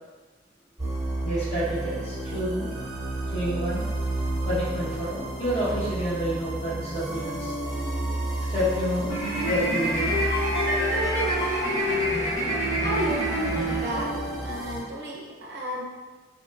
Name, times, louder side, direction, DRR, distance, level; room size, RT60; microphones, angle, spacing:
sound 1, 0.8-14.8, right 2 dB, 20° right, 0.7 m, -32 dB
voice 1, 1.2-2.7 3.3-3.8 4.4-7.5 8.5-9.1 9.5-10.2, equal, 35° left, -9 dB, 0.9 m, -29 dB
sound 2, 7.2-14.5, equal, 65° left, 0.4 m, -31 dB
sound 3, 9.1-14.3, equal, 80° left, 0.9 m, -29 dB
voice 2, 12.8-14.1 14.4-15.8, equal, 60° right, -2 dB, 0.5 m, -32 dB
2.9 x 2.1 x 2.2 m, 1.3 s
head